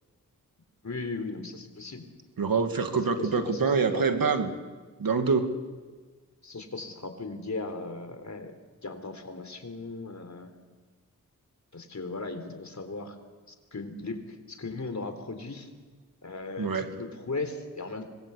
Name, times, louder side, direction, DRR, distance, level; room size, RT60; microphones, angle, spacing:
voice 1, 0.8-2.1 2.9-4.0 6.4-10.5 11.7-13.2 13.5-15.7 16.2-18.1, left 3 dB, 50° left, 7 dB, 3.9 m, -37 dB
voice 2, 2.4-4.5 5.0-5.5 16.6-16.9, right 5 dB, 75° right, 7 dB, 2.3 m, -25 dB
25.5 x 21.0 x 8.4 m, 1.4 s
cardioid pair, 45°, 35 cm